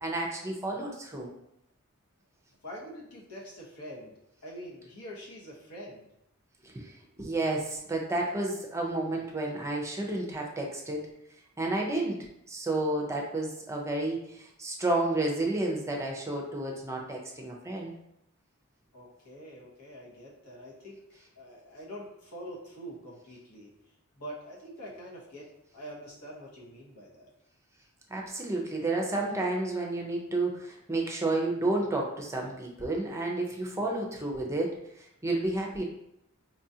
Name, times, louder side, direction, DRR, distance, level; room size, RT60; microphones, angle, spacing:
voice 1, 0.0-1.3 6.6-11.1 11.6-12.2 12.5-17.9 28.1-35.8, right 2 dB, 15° right, 0 dB, 0.5 m, -31 dB
voice 2, 2.6-6.1 18.9-23.7 24.1-27.3, equal, 85° left, -4 dB, 1.1 m, -45 dB
4.7 x 2.4 x 2.7 m, 0.79 s
head